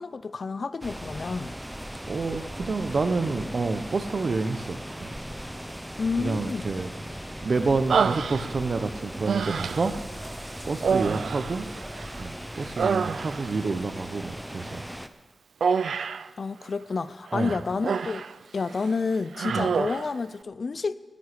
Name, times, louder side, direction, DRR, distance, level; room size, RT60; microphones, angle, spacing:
voice 1, 0.0-1.5 6.0-6.7 16.4-18.3 18.5-20.9, left 4 dB, 55° left, 0.5 m, -29 dB
sound 1, 0.8-15.1, equal, 5° right, 0.7 m, -38 dB
voice 2, 2.1-5.1 6.2-6.9 7.4-9.9 10.7-11.7 12.2-14.8 17.3-17.6 19.5-19.7, right 4 dB, 55° right, 0.8 m, -28 dB
sound 2, 2.6-8.5, left 1 dB, 30° left, 5.0 m, -48 dB
Human voice, 7.9-8.8 9.2-10.0 10.8-12.2 12.5-13.6 15.6-16.3 17.3-18.3 18.7-18.9 19.3-20.1, right 6 dB, 90° right, 0.3 m, -27 dB
9.6 x 9.4 x 9.7 m
wide cardioid pair, 100°, 0 cm